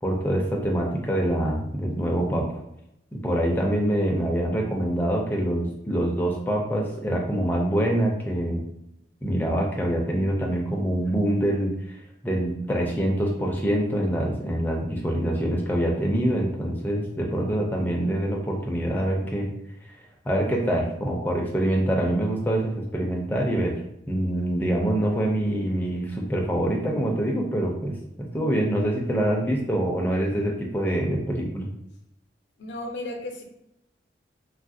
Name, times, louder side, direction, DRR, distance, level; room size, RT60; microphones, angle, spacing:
voice 1, 0.0-2.6 3.1-8.6 9.2-12.0 12.2-19.5 20.3-23.7 24.1-31.7, right 1 dB, 10° left, -1 dB, 0.4 m, -25 dB
voice 2, 32.6-33.4, left 1 dB, 80° left, 2 dB, 0.5 m, -34 dB
3.1 x 2.3 x 2.6 m, 0.81 s
head